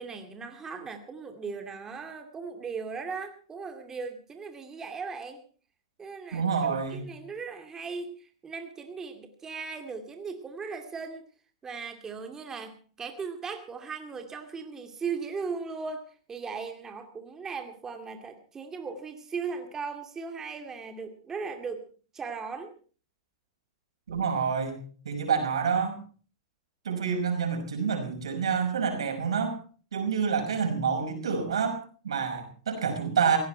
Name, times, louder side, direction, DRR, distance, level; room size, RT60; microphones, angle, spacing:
voice 1, 0.0-5.4 6.0-11.3 11.6-21.8 22.1-22.7, right 5 dB, 20° right, 5 dB, 2.3 m, -38 dB
voice 2, 6.3-7.1 24.1-26.0 26.8-29.6 29.9-33.4, right 6 dB, 90° right, 5 dB, 5.6 m, -28 dB
17.5 x 16.5 x 4.5 m, 0.40 s
hypercardioid pair, 125°, 3 cm